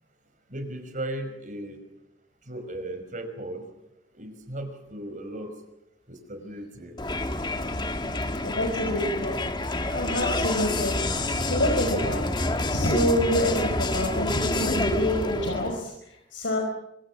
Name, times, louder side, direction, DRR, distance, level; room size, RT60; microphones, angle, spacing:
voice 1, 0.5-1.8 2.5-3.6 4.1-5.5 6.1-7.0, right 1 dB, 45° right, 7 dB, 5.4 m, -36 dB
Crowd, 7.0-15.8, left 2 dB, 25° left, 1.7 m, -28 dB
voice 2, 8.4-9.4 9.9-10.9 11.4-16.6, left 1 dB, 80° left, 2 dB, 5.3 m, -27 dB
26.5 x 25.5 x 7.5 m, 0.84 s
head